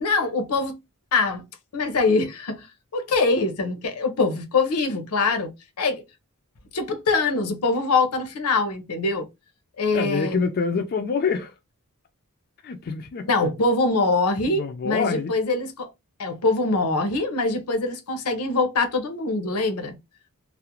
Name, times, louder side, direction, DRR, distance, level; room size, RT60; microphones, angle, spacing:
voice 1, 0.0-0.8 1.1-1.4 1.7-2.7 2.9-5.5 5.8-6.0 6.7-9.3 9.8-10.4 13.2-15.9 16.2-20.0, left 3 dB, 85° left, 0.7 m, -23 dB
voice 2, 9.9-11.5 12.6-13.3 14.4-15.3, left 5 dB, 45° left, 0.3 m, -26 dB
2.4 x 2.0 x 2.9 m
head